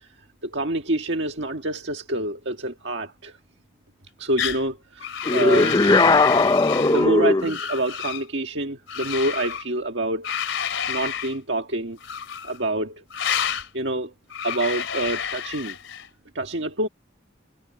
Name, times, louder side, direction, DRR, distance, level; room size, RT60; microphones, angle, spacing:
voice 1, 0.4-3.4 4.2-5.8 6.9-10.3 10.9-12.0 12.4-13.0 13.3-14.1 14.4-15.8 16.3-16.9, right 1 dB, 65° right, 1.7 m, -27 dB
sound 1, 4.4-4.6 5.0-7.1 7.4-8.2 8.9-9.7 10.2-11.4 12.0-12.6 13.1-13.7 14.3-16.1, left 8 dB, 80° left, 3.0 m, -29 dB
sound 2, 5.2-7.6, left 3 dB, 20° left, 0.4 m, -18 dB
head